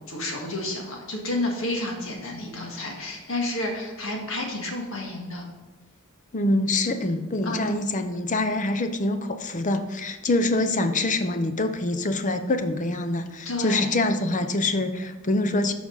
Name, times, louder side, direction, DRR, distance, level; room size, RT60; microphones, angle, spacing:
voice 1, 0.0-5.4 7.4-7.8 13.5-13.9, left 1 dB, 65° left, 0 dB, 1.8 m, -30 dB
voice 2, 6.3-15.7, left 2 dB, 35° left, 8 dB, 0.6 m, -25 dB
13.5 x 5.0 x 3.9 m, 1.2 s
head